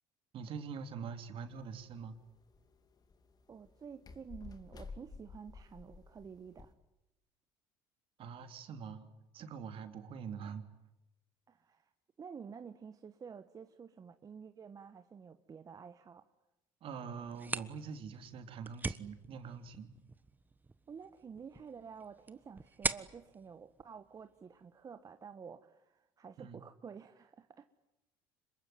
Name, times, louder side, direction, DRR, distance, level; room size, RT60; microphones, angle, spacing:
voice 1, 0.3-2.2 8.2-9.1 9.3-10.6 16.8-20.0 26.4-26.6, right 6 dB, 55° right, 7 dB, 3.2 m, -44 dB
sound 1, 1.5-6.7, left 4 dB, 35° left, 2.8 m, -53 dB
voice 2, 3.5-6.7 11.5-11.9 12.2-16.3 20.9-27.7, right 6 dB, 35° right, 9 dB, 1.3 m, -50 dB
sound 2, 17.2-24.7, right 3 dB, 15° right, 1.2 m, -43 dB
26.5 x 22.5 x 9.6 m, 0.93 s
supercardioid pair, 85°, 11 cm